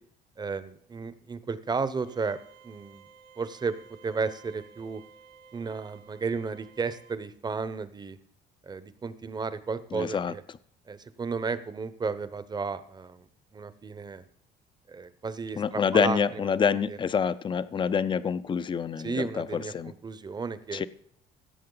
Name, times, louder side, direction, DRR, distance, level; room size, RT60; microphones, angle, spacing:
voice 1, 0.4-2.4 2.6-3.1 3.4-3.8 4.0-5.0 5.5-8.2 8.6-10.4 10.9-13.3 13.5-14.2 14.9-16.5 16.9-17.0 19.0-20.9, right 4 dB, 25° right, 14 dB, 0.8 m, -33 dB
sound 1, 2.1-7.1, right 6 dB, 75° right, 2.2 m, -54 dB
voice 2, 9.9-10.3 15.6-19.9 20.7-20.9, left 7 dB, 30° left, 15 dB, 0.5 m, -27 dB
16.5 x 7.6 x 3.9 m, 0.63 s
cardioid pair, 110°, 17 cm